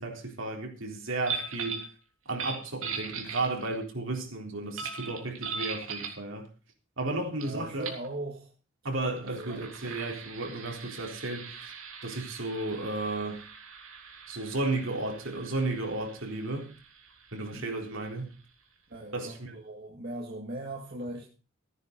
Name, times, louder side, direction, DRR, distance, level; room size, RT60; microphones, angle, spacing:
voice 1, 0.0-1.9 2.3-6.5 7.0-7.9 8.8-11.7 12.0-13.4 14.3-16.7 17.3-18.3 19.1-19.6, right 2 dB, 70° right, 3.9 m, -33 dB
sound 1, 1.2-1.9 2.3-3.8 4.8-6.2 7.4-7.5 7.8-8.1 9.1-18.4, right 5 dB, 85° right, 3.4 m, -40 dB
voice 2, 7.4-8.5 9.3-10.0 17.5-17.7 18.9-21.3, right 1 dB, 50° right, 2.3 m, -39 dB
15.0 x 9.8 x 5.3 m
head